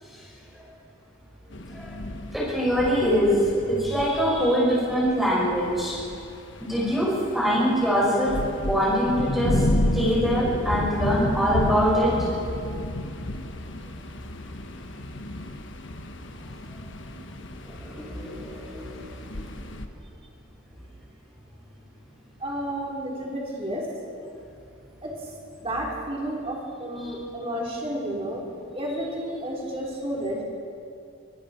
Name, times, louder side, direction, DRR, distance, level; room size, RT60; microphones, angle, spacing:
sound 1, 1.5-19.9, left 1 dB, 60° left, 1.3 m, -32 dB
voice 1, 2.3-6.0 6.6-7.1 7.3-8.3 8.7-9.7 9.9-12.4 17.1-17.2 17.6-19.1 27.0-27.1, equal, ahead, -7 dB, 6.3 m, -23 dB
voice 2, 22.4-23.9 25.0-25.1 25.6-28.4 28.7-30.4, right 1 dB, 30° right, -3 dB, 4.1 m, -31 dB
26.5 x 25.5 x 4.6 m, 2.6 s
head